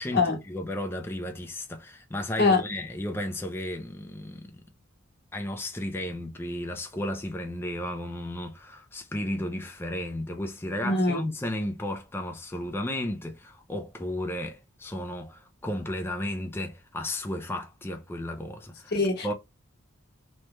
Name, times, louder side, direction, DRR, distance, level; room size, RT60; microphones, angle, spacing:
voice 1, 0.0-4.6 5.3-19.0 19.2-19.3, left 1 dB, 10° left, 0.4 m, -34 dB
voice 2, 10.8-11.2 18.9-19.3, left 3 dB, 50° left, 1.0 m, -23 dB
3.2 x 2.2 x 3.0 m
head